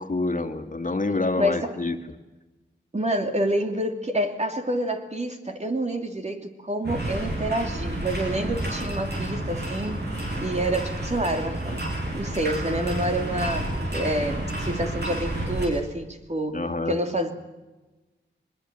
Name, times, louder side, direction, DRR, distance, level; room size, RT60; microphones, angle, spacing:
voice 1, 0.0-2.0 16.5-16.9, left 2 dB, 40° left, 6 dB, 2.2 m, -27 dB
voice 2, 1.4-1.7 2.9-10.0 10.4-11.8 12.1-17.3, right 1 dB, 35° right, 4 dB, 3.0 m, -28 dB
sound 1, 6.8-15.7, right 1 dB, 60° right, 7.7 m, -30 dB
23.5 x 21.0 x 7.6 m, 1.1 s
wide cardioid pair, 75°, 20 cm